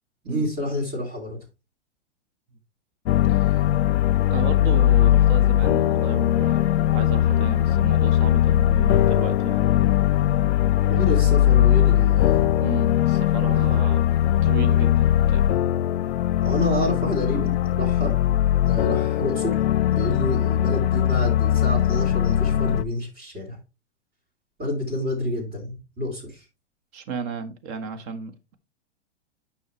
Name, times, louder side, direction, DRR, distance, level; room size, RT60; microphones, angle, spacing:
voice 1, 0.2-1.4 10.9-12.5 13.5-13.8 16.4-18.1 18.7-19.5 19.9-23.6 24.6-26.4, equal, 25° right, 3.2 m, -28 dB
sound 1, 3.0-22.8, left 12 dB, 65° left, 0.5 m, -20 dB
voice 2, 3.3-3.6 4.3-9.7 12.6-14.0 14.4-15.5 26.9-28.5, right 5 dB, 45° right, 1.6 m, -34 dB
9.2 x 5.8 x 3.3 m
hypercardioid pair, 110°, 35 cm